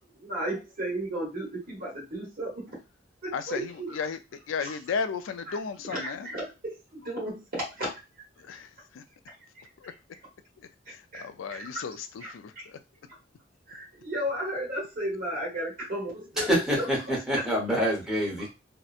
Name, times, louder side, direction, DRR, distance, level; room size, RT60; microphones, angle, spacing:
voice 1, 0.2-2.7 3.2-3.9 4.6-4.7 5.5-5.6 5.9-8.0 9.3-9.4 10.8-11.8 12.2-12.6 13.7-16.9, right 1 dB, 50° right, 1.1 m, -34 dB
voice 2, 3.3-4.2 4.5-6.3 8.4-9.0 9.8-9.9 10.6-12.8, left 5 dB, 80° left, 0.3 m, -35 dB
voice 3, 16.4-18.5, equal, 5° right, 1.0 m, -26 dB
2.7 x 2.1 x 2.4 m
head